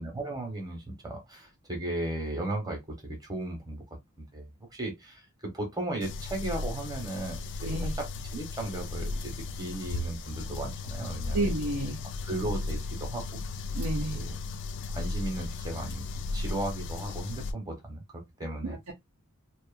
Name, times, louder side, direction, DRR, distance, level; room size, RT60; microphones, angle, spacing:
voice 1, 0.0-3.8 4.2-5.2 5.5-9.3 9.6-11.4 12.3-13.4 14.1-14.4 14.9-18.8, right 1 dB, 15° right, 1.0 m, -36 dB
sound 1, 6.0-17.5, left 3 dB, 55° left, 0.3 m, -35 dB
voice 2, 7.6-7.9 11.3-12.0 13.7-14.3 18.6-18.9, right 2 dB, 70° right, 0.7 m, -31 dB
2.7 x 2.4 x 2.4 m
head